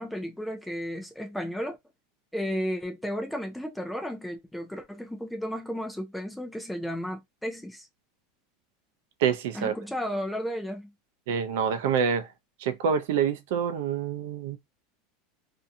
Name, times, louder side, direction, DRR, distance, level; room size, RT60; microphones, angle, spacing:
voice 1, 0.0-1.8 2.3-7.9 9.5-10.9, equal, ahead, 0.5 m, -33 dB
voice 2, 9.2-9.7 11.3-12.3 12.6-14.6, right 7 dB, 65° right, 0.5 m, -26 dB
2.6 x 2.3 x 2.6 m
supercardioid pair, 175°, 0 cm